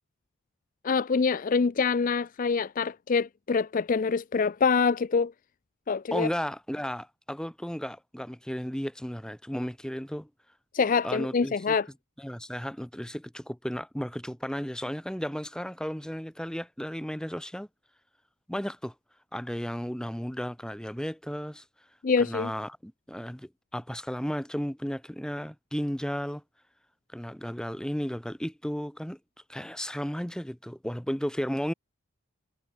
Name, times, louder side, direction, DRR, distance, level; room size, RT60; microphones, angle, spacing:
voice 1, 0.8-5.3 5.9-6.3 10.7-11.9 22.0-22.5, left 5 dB, 35° left, 0.4 m, -25 dB
voice 2, 6.1-10.3 11.0-11.8 12.2-17.7 18.5-18.9 19.3-21.6 22.2-26.4 27.1-29.2 29.5-31.7, equal, 5° left, 1.3 m, -34 dB
head